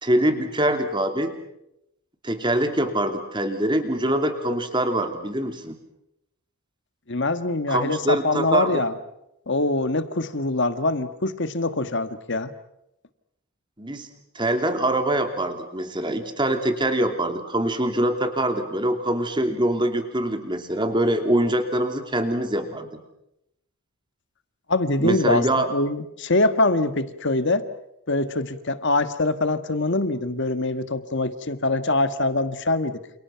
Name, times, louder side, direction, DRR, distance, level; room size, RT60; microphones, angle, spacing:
voice 1, 0.0-1.3 2.2-5.8 7.7-8.8 13.8-14.1 14.3-22.9 25.0-25.7, right 1 dB, 20° right, 6 dB, 2.9 m, -24 dB
voice 2, 7.1-8.9 9.5-12.5 24.7-27.6 28.1-33.0, left 2 dB, 50° left, 11 dB, 1.6 m, -24 dB
29.5 x 29.0 x 5.8 m, 0.83 s
head